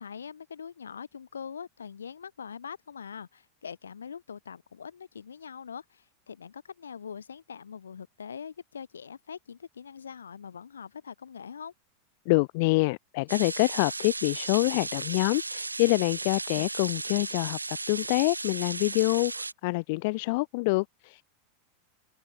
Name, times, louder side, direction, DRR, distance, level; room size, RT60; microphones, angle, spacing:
voice 1, 0.0-11.7, left 7 dB, 75° left, 1.8 m, -43 dB
voice 2, 12.3-21.2, left 26 dB, 55° left, 0.5 m, -26 dB
sound 1, 13.3-19.5, right 3 dB, 85° right, 0.8 m, -35 dB
figure-of-eight pair, 85°, 0 cm